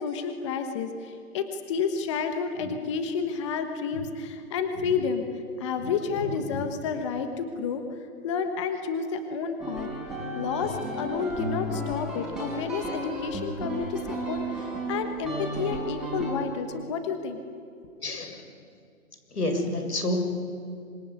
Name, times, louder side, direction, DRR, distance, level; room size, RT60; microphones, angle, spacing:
voice 1, 0.0-7.8 8.2-9.9 10.3-17.4 17.8-17.9, left 5 dB, 20° left, 7 dB, 1.3 m, -30 dB
sound 1, 9.6-16.3, right 1 dB, ahead, 4.4 m, -33 dB
voice 2, 18.0-18.4 19.3-20.2, left 1 dB, 85° left, 6 dB, 6.9 m, -28 dB
26.5 x 22.5 x 9.8 m, 2.4 s
hypercardioid pair, 160°, 45 cm